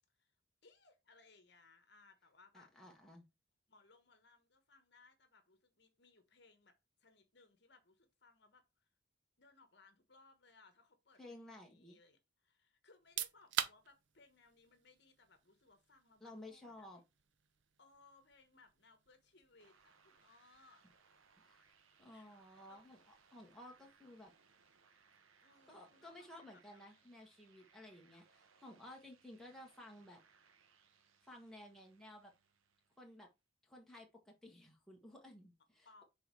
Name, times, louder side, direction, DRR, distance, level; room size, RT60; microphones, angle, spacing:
voice 1, 0.6-2.7 3.7-8.9 9.4-16.9 17.8-20.8 22.0-22.8 23.1-23.2 23.5-23.6 25.4-27.1 35.8-36.0, left 3 dB, 55° left, 1.2 m, -67 dB
voice 2, 2.5-3.2 11.2-12.0 16.2-17.0 21.4-23.0 23.3-24.3 25.7-30.2 31.2-32.3 33.0-33.3 33.6-36.0, left 1 dB, ahead, 1.5 m, -55 dB
sound 1, 12.9-25.6, right 10 dB, 65° right, 0.6 m, -49 dB
sound 2, 19.6-33.3, right 5 dB, 90° right, 0.9 m, -70 dB
6.3 x 3.9 x 4.6 m
head